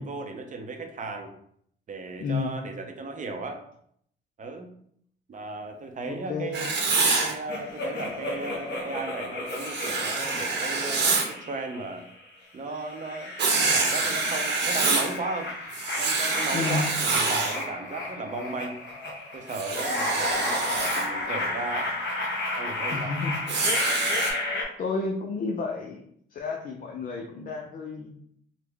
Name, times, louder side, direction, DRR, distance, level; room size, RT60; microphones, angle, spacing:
voice 1, 0.0-1.3 1.9-3.6 4.4-4.7 5.3-12.0 12.5-13.3 13.7-15.5 16.0-18.8 19.3-21.9 22.6-23.2, right 3 dB, 40° right, 5 dB, 0.6 m, -35 dB
voice 2, 2.2-2.5 6.1-6.6 16.5-16.9 22.9-23.3 24.8-26.0 26.3-28.1, left 4 dB, 45° left, 0 dB, 0.5 m, -31 dB
Writing, 6.5-7.3 9.5-11.3 13.4-15.2 15.7-17.6 19.5-21.1 23.5-24.3, right 3 dB, 60° right, 0.9 m, -26 dB
sound 1, 7.5-12.2 12.7-24.6, left 2 dB, 60° left, 1.1 m, -33 dB
3.3 x 2.1 x 3.4 m, 0.68 s
cardioid pair, 90°, 20 cm